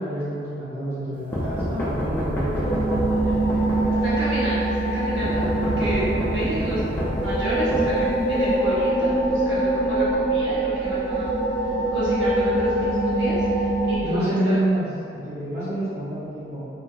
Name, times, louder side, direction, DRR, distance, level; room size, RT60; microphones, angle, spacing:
voice 1, 0.0-4.0 14.0-16.7, right 1 dB, 55° right, -18 dB, 1.0 m, -28 dB
sound 1, 1.3-4.3 5.2-8.5, equal, 10° left, 0.4 m, -28 dB
sound 2, 2.6-14.0, right 1 dB, 30° left, 0.8 m, -23 dB
voice 2, 4.0-6.8 7.2-11.3 11.9-14.6, right 1 dB, 90° right, -11 dB, 1.0 m, -30 dB
2.6 x 2.6 x 2.3 m, 2.4 s
head